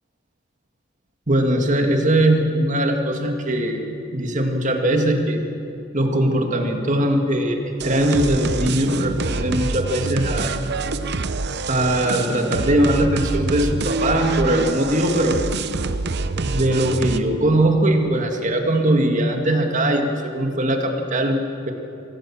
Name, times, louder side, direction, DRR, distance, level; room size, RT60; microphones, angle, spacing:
voice 1, 1.3-3.9 4.1-5.4 5.9-10.6 11.7-15.4 16.4-21.7, right 1 dB, 40° right, 3 dB, 2.0 m, -20 dB
sound 1, 7.8-17.2, right 3 dB, 55° right, 0.8 m, -26 dB
24.5 x 16.0 x 7.3 m, 2.7 s
head